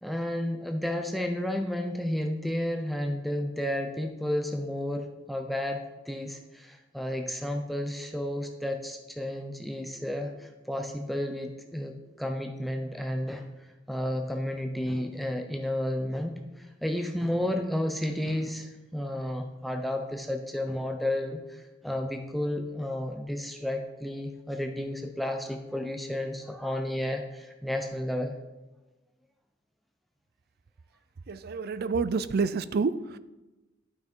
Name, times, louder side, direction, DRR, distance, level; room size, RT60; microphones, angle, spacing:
voice 1, 0.0-13.4 13.9-28.3, left 1 dB, ahead, 0.6 m, -32 dB
voice 2, 31.3-33.2, right 4 dB, 50° right, 0.4 m, -28 dB
12.0 x 6.0 x 4.4 m
head